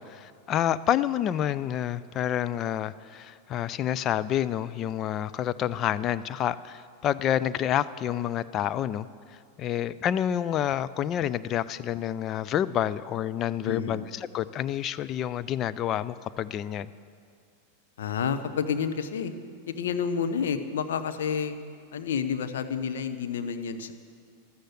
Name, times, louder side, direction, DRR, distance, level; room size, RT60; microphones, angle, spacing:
voice 1, 0.0-9.1 9.6-16.9, left 10 dB, 30° left, 14 dB, 0.4 m, -28 dB
voice 2, 13.7-14.0 18.0-19.3 19.7-21.6 21.9-23.9, left 7 dB, 60° left, 8 dB, 0.9 m, -29 dB
13.0 x 12.5 x 7.8 m, 2.2 s
figure-of-eight pair, 90°, 0 cm